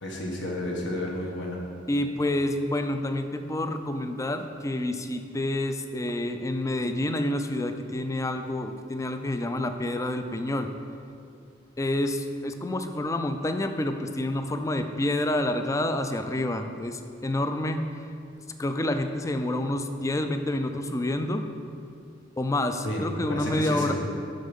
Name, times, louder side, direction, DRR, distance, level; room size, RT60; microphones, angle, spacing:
voice 1, 0.0-1.6 22.8-23.0 23.3-23.9, left 1 dB, 70° left, -1 dB, 1.5 m, -31 dB
voice 2, 1.9-10.7 11.8-17.8 18.6-21.4 22.4-23.9, left 1 dB, 15° left, 7 dB, 0.4 m, -28 dB
7.7 x 6.2 x 5.3 m, 2.5 s
head